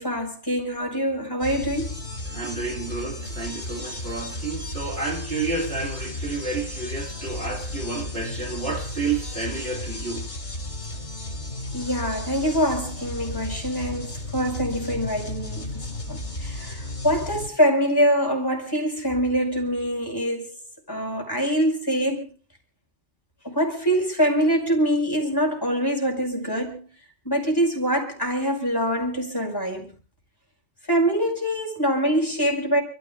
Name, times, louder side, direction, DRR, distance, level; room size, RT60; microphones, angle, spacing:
voice 1, 0.0-1.9 11.7-20.6 20.9-22.2 23.4-26.8 27.3-29.9 30.9-32.8, equal, 20° left, 5.4 m, -24 dB
sound 1, 1.4-17.5, left 2 dB, 75° left, 3.6 m, -34 dB
voice 2, 2.3-10.3, right 3 dB, 60° right, 2.7 m, -30 dB
29.5 x 14.5 x 2.5 m
omnidirectional pair, 1.2 m